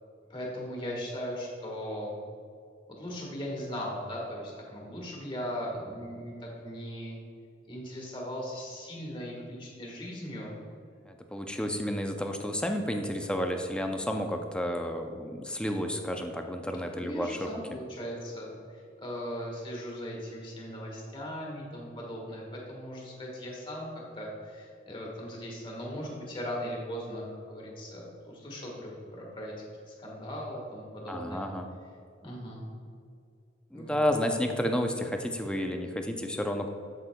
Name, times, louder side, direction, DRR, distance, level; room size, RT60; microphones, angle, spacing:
voice 1, 0.3-2.2 2.9-7.2 7.7-10.6 17.0-29.5 29.9-31.5 32.2-32.7 33.7-34.2, equal, 25° left, -3 dB, 1.4 m, -38 dB
voice 2, 11.1-17.5 31.1-31.7 33.7-36.7, equal, 5° left, 4 dB, 0.4 m, -31 dB
7.7 x 7.5 x 2.2 m, 2.4 s
head